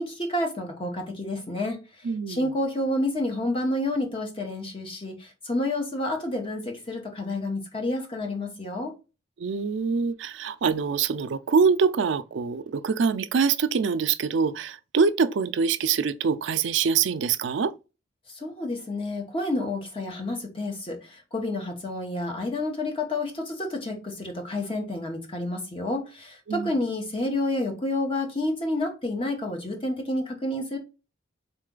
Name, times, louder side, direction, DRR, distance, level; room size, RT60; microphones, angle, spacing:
voice 1, 0.0-8.9 18.3-30.8, left 1 dB, 30° left, 1.0 m, -29 dB
voice 2, 2.0-2.5 9.4-17.7 26.5-26.8, right 5 dB, 75° right, 0.4 m, -24 dB
4.0 x 3.2 x 3.8 m
head